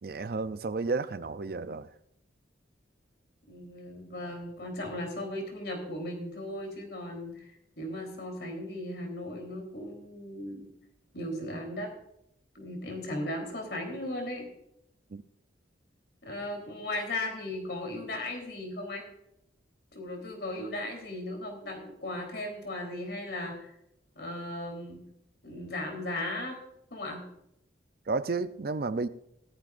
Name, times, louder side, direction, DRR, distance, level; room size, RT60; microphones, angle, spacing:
voice 1, 0.0-1.9 15.1-15.2 28.1-29.1, right 3 dB, 50° right, 13 dB, 0.5 m, -32 dB
voice 2, 3.5-7.5 7.8-10.7 11.1-11.9 12.5-14.5 16.2-19.0 19.9-23.7 24.2-25.0 25.4-26.5 26.9-27.2, left 1 dB, 60° left, 1 dB, 3.6 m, -37 dB
17.5 x 13.5 x 2.5 m, 0.78 s
head